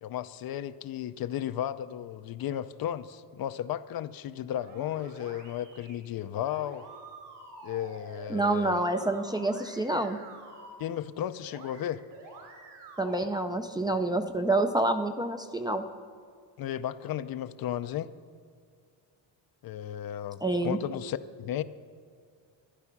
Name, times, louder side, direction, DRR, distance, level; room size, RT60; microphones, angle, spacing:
voice 1, 0.0-6.8 7.6-8.8 10.8-12.0 16.6-18.1 19.6-21.6, left 11 dB, 55° left, 13 dB, 0.5 m, -34 dB
sound 1, 4.5-6.0 6.4-10.7 11.4-11.8 12.1-13.2, right 2 dB, 65° right, 4.2 m, -48 dB
voice 2, 8.3-10.2 13.0-15.9 20.4-20.8, right 2 dB, 10° right, 4 dB, 0.4 m, -28 dB
13.5 x 11.0 x 5.9 m, 2.2 s
cardioid pair, 135°, 44 cm